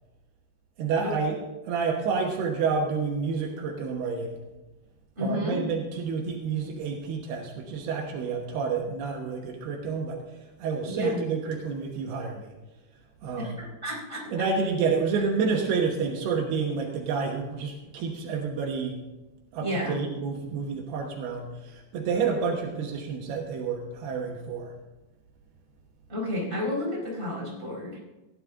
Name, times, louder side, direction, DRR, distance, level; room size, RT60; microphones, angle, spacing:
voice 1, 0.8-1.4 1.7-4.4 5.2-10.2 10.6-12.5 13.2-13.5 14.3-19.0 19.5-24.7, right 5 dB, 75° right, 0 dB, 3.1 m, -29 dB
voice 2, 5.2-5.6 10.8-11.2 13.4-14.2 19.6-20.0 26.1-28.0, left 1 dB, 10° right, -5 dB, 4.5 m, -31 dB
16.0 x 11.5 x 3.7 m, 1.0 s
omnidirectional pair, 4.8 m